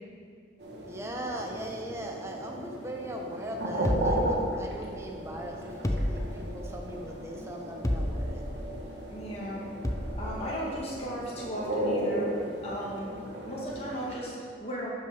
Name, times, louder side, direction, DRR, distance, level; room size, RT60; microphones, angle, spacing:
sound 1, 0.6-14.2, right 1 dB, 75° right, 2.1 m, -35 dB
voice 1, 0.9-8.4, equal, 15° right, 0 dB, 1.0 m, -39 dB
sound 2, 3.8-5.0 5.8-6.7 7.8-8.5 9.8-10.3, left 1 dB, 20° left, 0.5 m, -31 dB
voice 2, 9.1-9.6 10.2-12.3 12.6-13.1 13.4-14.9, equal, 35° left, -6 dB, 1.9 m, -36 dB
11.5 x 5.9 x 5.2 m, 2.1 s
head